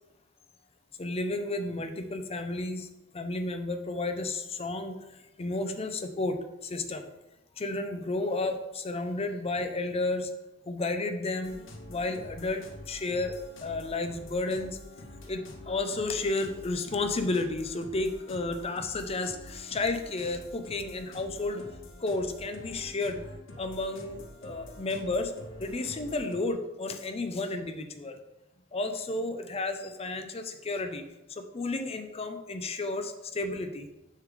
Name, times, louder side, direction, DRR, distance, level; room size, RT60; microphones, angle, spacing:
voice 1, 1.0-2.9 3.1-5.0 5.4-7.0 7.6-10.3 10.7-11.6 11.9-14.8 15.3-21.7 22.0-23.2 23.6-25.3 25.6-28.2 28.7-31.0 31.3-33.9, left 2 dB, 30° left, 7 dB, 0.6 m, -32 dB
sound 1, 11.4-26.4, left 1 dB, 65° left, 0.8 m, -47 dB
6.5 x 3.8 x 4.8 m, 1.0 s
head